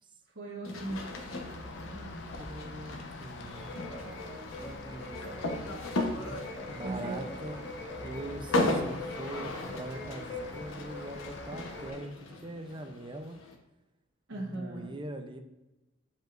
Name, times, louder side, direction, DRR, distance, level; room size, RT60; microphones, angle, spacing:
voice 1, 0.3-2.4 5.8-6.0 6.8-7.2 14.3-15.0, right 2 dB, 75° right, -7 dB, 1.6 m, -40 dB
sound 1, 0.6-13.5, left 2 dB, 90° left, 1.1 m, -37 dB
Rain, 0.8-11.9, left 2 dB, 60° left, 0.7 m, -46 dB
voice 2, 2.4-3.7 4.5-5.4 6.1-7.6 8.0-13.4 14.3-15.4, right 1 dB, 25° right, 6 dB, 0.6 m, -43 dB
sound 2, 3.5-12.1, left 2 dB, 20° left, 1.6 m, -44 dB
9.1 x 5.2 x 2.6 m, 1.0 s
head